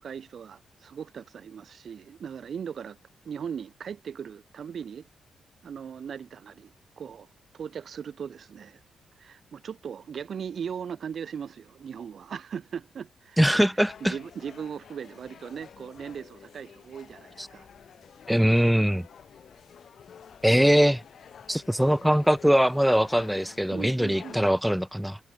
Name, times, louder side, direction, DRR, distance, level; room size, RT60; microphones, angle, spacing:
voice 1, 0.0-3.0 3.2-5.1 5.6-7.3 7.5-8.8 9.2-13.4 14.0-17.7 23.7-24.4, right 7 dB, 55° right, 2.5 m, -38 dB
voice 2, 13.4-14.1 17.4-17.5 18.3-19.1 20.4-21.0 21.5-25.2, equal, ahead, 0.4 m, -22 dB
sound 1, 13.9-24.5, left 8 dB, 60° left, 4.6 m, -50 dB
cardioid pair, 105°, 0 cm